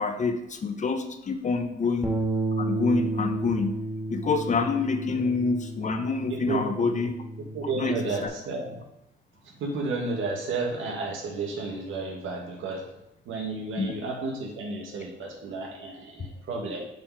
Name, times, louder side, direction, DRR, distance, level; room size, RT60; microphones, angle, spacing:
voice 1, 0.0-2.1 2.6-7.2 7.8-8.3 13.8-14.0, left 4 dB, 35° left, 7 dB, 0.8 m, -27 dB
Bass guitar, 2.0-8.3, right 2 dB, 15° right, 2.2 m, -32 dB
voice 2, 6.3-6.6 7.5-8.8 9.4-12.9 13.2-16.8, right 3 dB, 80° right, 1 dB, 1.7 m, -32 dB
7.5 x 4.3 x 4.7 m, 0.85 s
cardioid pair, 90°, 20 cm